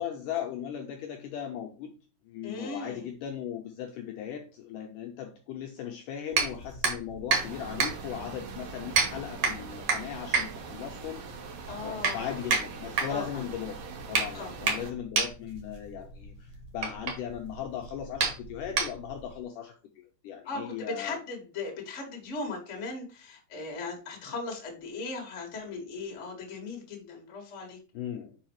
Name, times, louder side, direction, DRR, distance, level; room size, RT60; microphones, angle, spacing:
voice 1, 0.0-1.9 2.3-11.2 11.8-13.8 14.1-21.2 27.9-28.4, left 9 dB, 75° left, 2 dB, 2.0 m, -38 dB
voice 2, 2.4-3.1 11.7-12.4 13.1-13.4 14.3-14.5 20.4-27.8, left 3 dB, 35° left, 1 dB, 1.2 m, -38 dB
sound 1, 6.3-19.3, right 4 dB, 55° right, 1.9 m, -31 dB
sound 2, 7.3-14.9, right 5 dB, 90° right, 1.4 m, -43 dB
5.5 x 4.8 x 4.6 m, 0.35 s
omnidirectional pair, 4.3 m